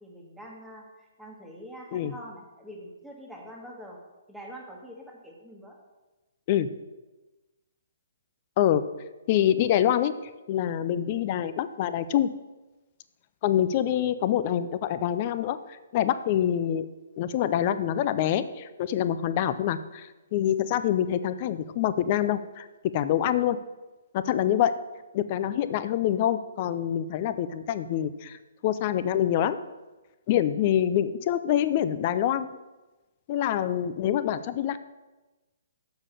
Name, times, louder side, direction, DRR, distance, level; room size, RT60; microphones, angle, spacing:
voice 1, 0.0-4.0 4.3-5.8, equal, ahead, -2 dB, 1.5 m, -45 dB
voice 2, 9.3-10.1 10.5-12.3 13.4-15.6 15.9-16.9 17.2-23.6 24.1-24.7 25.1-28.4 28.6-29.6 30.3-32.5 33.3-34.8, left 11 dB, 35° left, 13 dB, 0.4 m, -25 dB
7.1 x 5.6 x 6.7 m, 1.1 s
hypercardioid pair, 160°, 0 cm